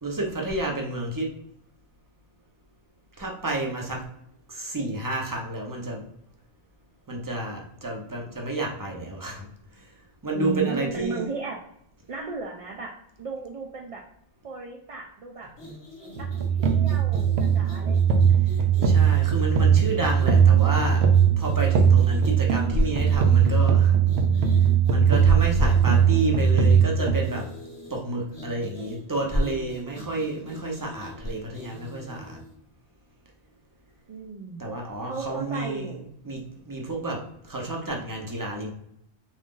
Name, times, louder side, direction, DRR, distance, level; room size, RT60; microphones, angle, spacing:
voice 1, 0.0-1.3 3.2-4.1 4.5-6.1 7.1-9.5 9.7-10.0 10.2-11.3 18.8-21.1 21.4-24.0 24.9-27.5 27.9-32.4 34.6-35.9 36.2-38.7, right 1 dB, 20° right, 0 dB, 0.7 m, -29 dB
voice 2, 10.3-11.6 12.1-14.0 14.4-15.5 16.1-18.0 34.1-34.7 35.0-36.1, right 4 dB, 55° right, 0 dB, 0.3 m, -35 dB
sound 1, 15.5-32.6, left 1 dB, 25° left, 1.0 m, -44 dB
sound 2, 16.2-27.2, right 7 dB, 70° right, 0.8 m, -20 dB
3.8 x 2.4 x 3.7 m, 0.74 s
omnidirectional pair, 1.1 m